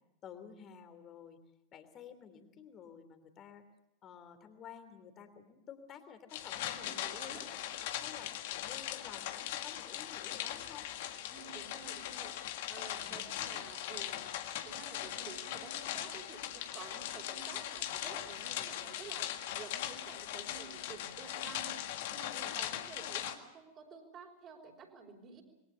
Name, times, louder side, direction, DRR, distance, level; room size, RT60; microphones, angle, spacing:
voice 1, 0.2-1.4 1.7-3.6 4.0-8.3 8.6-10.8 12.9-13.6 22.3-22.5, left 8 dB, 30° left, 9 dB, 3.2 m, -52 dB
sound 1, 6.3-23.4, left 12 dB, 50° left, 1.8 m, -40 dB
voice 2, 6.7-7.5 10.1-10.6 11.3-12.3 12.7-21.7 22.1-25.4, right 5 dB, 30° right, -1 dB, 4.9 m, -51 dB
27.0 x 22.0 x 6.9 m, 0.87 s
figure-of-eight pair, 90°, 0 cm